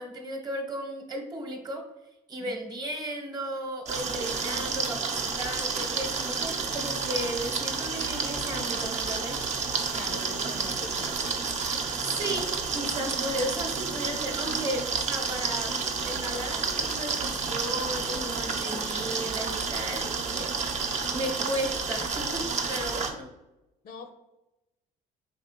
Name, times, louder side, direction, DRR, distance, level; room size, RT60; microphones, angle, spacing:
voice 1, 0.0-1.8 2.3-9.4 12.0-15.7 16.0-23.3, right 1 dB, 25° right, 3 dB, 1.0 m, -35 dB
sound 1, 3.9-23.1, right 4 dB, 40° right, 0.7 m, -30 dB
voice 2, 9.9-11.3 23.8-24.1, left 4 dB, 65° left, 7 dB, 0.6 m, -43 dB
4.7 x 3.3 x 2.9 m, 0.96 s
cardioid pair, 110°, 17 cm